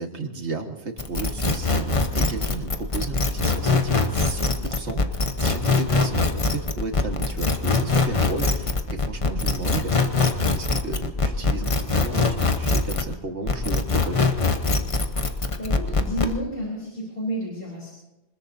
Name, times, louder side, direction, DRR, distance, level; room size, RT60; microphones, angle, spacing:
voice 1, 0.0-5.0 5.4-9.9 10.3-14.3, right 3 dB, 80° right, 4 dB, 2.0 m, -33 dB
sound 1, 1.0-13.1 13.5-16.3, left 3 dB, 30° left, 1.0 m, -22 dB
voice 2, 15.6-17.9, equal, 55° left, -4 dB, 4.0 m, -30 dB
25.5 x 20.5 x 2.8 m, 1.0 s
omnidirectional pair, 1.1 m